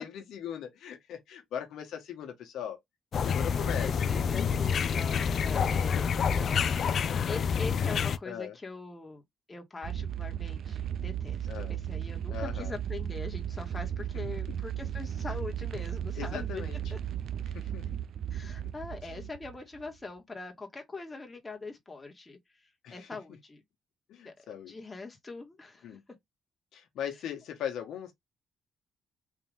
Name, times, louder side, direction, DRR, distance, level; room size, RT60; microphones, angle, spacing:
voice 1, 0.0-2.8 3.2-3.9 5.3-6.3 7.3-7.4 7.8-8.6 11.5-11.7 12.3-12.7 14.5-14.6 16.2-16.8 17.5-17.9 18.4-18.7 19.0-19.3 22.8-23.1 24.1-24.7 25.8-26.0 26.7-28.1, left 9 dB, 80° left, 1.1 m, -40 dB
sound 1, 3.1-8.2, left 6 dB, 55° left, 0.4 m, -28 dB
voice 2, 3.5-6.1 6.4-9.2 9.5-16.6 16.9-17.0 18.3-23.6 24.2-24.3 24.7-26.0, left 3 dB, 20° left, 1.5 m, -42 dB
sound 2, 9.8-19.9, right 10 dB, 70° right, 0.4 m, -35 dB
3.8 x 2.7 x 3.5 m
cardioid pair, 90°, 0 cm